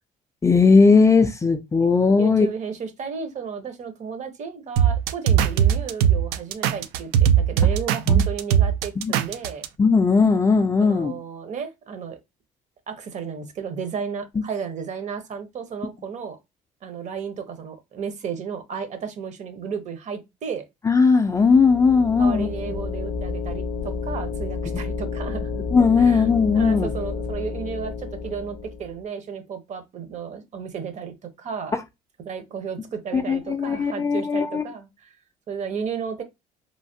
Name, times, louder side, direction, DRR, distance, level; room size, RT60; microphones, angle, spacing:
voice 1, 0.4-2.5 8.1-8.2 9.0-9.1 9.8-11.1 20.8-22.5 24.7-24.8 25.7-26.9 33.1-34.6, left 4 dB, 20° left, 0.4 m, -18 dB
voice 2, 2.2-9.6 10.8-12.2 12.9-16.4 16.8-20.6 22.2-25.6 26.0-26.3 26.5-31.8 32.2-35.1 35.5-36.2, right 6 dB, 50° right, 0.8 m, -33 dB
sound 1, 4.8-9.7, right 9 dB, 85° right, 0.4 m, -19 dB
sound 2, 21.3-29.0, left 4 dB, 80° left, 0.5 m, -31 dB
3.1 x 2.1 x 2.7 m
cardioid pair, 100°, 16 cm